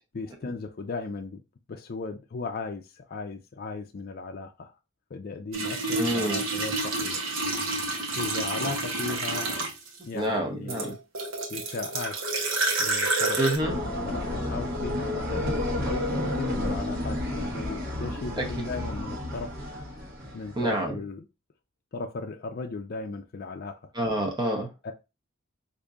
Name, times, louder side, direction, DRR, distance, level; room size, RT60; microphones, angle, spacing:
voice 1, 0.1-1.4 1.7-4.7 5.1-7.2 8.2-9.5 10.0-11.0 11.5-12.2 12.8-13.4 13.7-15.6 15.9-19.5 20.3-21.3 21.9-23.9 24.8-24.9, left 3 dB, 50° left, 0.4 m, -36 dB
sound 1, 5.5-10.0 10.7-13.6, right 2 dB, 75° right, 1.0 m, -29 dB
voice 2, 5.9-6.4 10.1-11.0 13.4-13.7 18.4-18.5 20.6-21.0 23.9-24.7, right 1 dB, 20° right, 0.7 m, -27 dB
sound 2, 13.6-20.7, left 1 dB, 50° right, 1.1 m, -31 dB
5.0 x 2.6 x 2.3 m
head